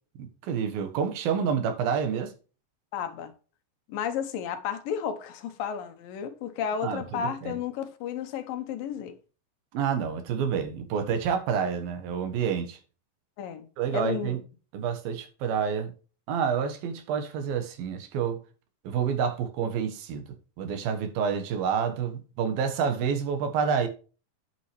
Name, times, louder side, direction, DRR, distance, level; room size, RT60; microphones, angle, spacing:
voice 1, 0.2-2.3 6.8-7.6 9.7-12.8 13.8-14.4 14.7-15.9 16.3-18.4 18.8-20.3 20.6-23.9, right 7 dB, 80° right, 3.2 m, -28 dB
voice 2, 2.9-3.3 3.9-9.2 13.4-13.7 13.9-14.4, left 8 dB, 75° left, 2.8 m, -32 dB
9.1 x 8.2 x 3.2 m
omnidirectional pair, 4.1 m